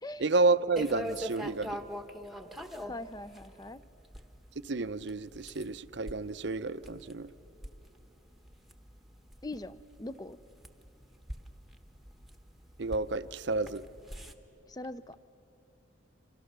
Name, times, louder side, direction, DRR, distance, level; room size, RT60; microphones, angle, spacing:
voice 1, 0.2-1.8 4.6-7.3 12.8-13.8, right 3 dB, 65° right, 14 dB, 0.7 m, -30 dB
sound 1, 0.8-14.3, equal, ahead, 1.0 m, -44 dB
voice 2, 2.8-3.8 9.4-10.4 14.7-15.2, left 2 dB, 20° left, 14 dB, 0.5 m, -42 dB
29.5 x 26.5 x 6.8 m, 2.9 s
head